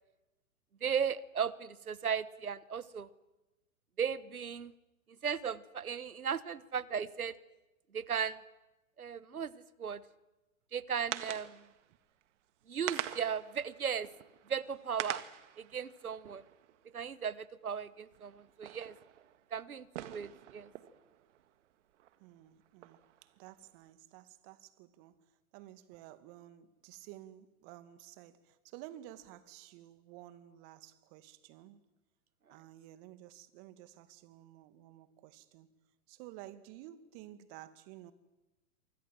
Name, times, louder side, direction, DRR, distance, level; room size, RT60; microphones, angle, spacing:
voice 1, 0.8-3.1 4.0-4.7 5.2-7.4 7.9-8.4 9.0-10.0 10.7-11.7 12.7-14.1 14.5-15.2 15.6-16.4 16.9-18.9 19.5-20.7, right 7 dB, 90° right, 1.4 m, -36 dB
sound 1, 10.9-11.8 12.2-12.3 12.6-17.4 18.0-22.2 22.6-23.7, right 12 dB, 55° right, 1.9 m, -45 dB
voice 2, 22.2-31.8 32.5-35.7 36.1-38.1, right 13 dB, 40° right, 2.3 m, -53 dB
28.5 x 25.0 x 7.6 m
hypercardioid pair, 115°, 42 cm